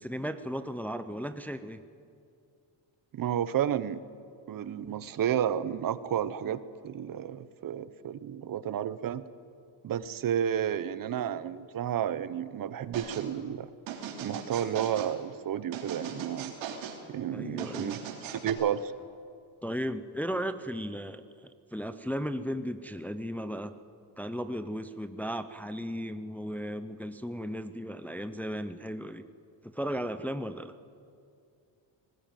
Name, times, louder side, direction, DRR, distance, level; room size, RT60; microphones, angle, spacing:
voice 1, 0.0-1.8 17.3-18.0 19.6-23.7 24.2-29.3 29.6-30.7, equal, 5° left, 10 dB, 0.6 m, -35 dB
voice 2, 3.1-4.0 4.5-9.2 9.8-13.7 14.2-16.5 17.1-18.0 18.4-18.9, right 9 dB, 45° right, 15 dB, 0.9 m, -31 dB
sound 1, 12.9-13.3 13.9-15.1 15.7-17.0 17.6-18.5, right 7 dB, 80° right, 3.1 m, -39 dB
20.0 x 19.0 x 9.2 m, 2.4 s
cardioid pair, 125°, 46 cm